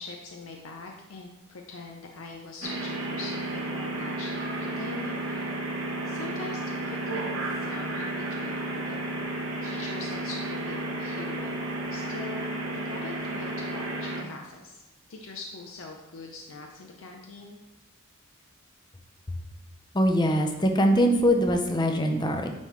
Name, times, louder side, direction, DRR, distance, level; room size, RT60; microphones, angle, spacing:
voice 1, 0.0-5.6 6.1-9.3 9.6-14.8 15.1-17.6, left 3 dB, 75° left, 1 dB, 0.6 m, -42 dB
sound 1, 2.6-14.2, right 2 dB, 70° right, 1.0 m, -32 dB
voice 2, 19.9-22.5, equal, 20° left, 4 dB, 0.6 m, -22 dB
9.3 x 3.5 x 3.2 m, 1.1 s
head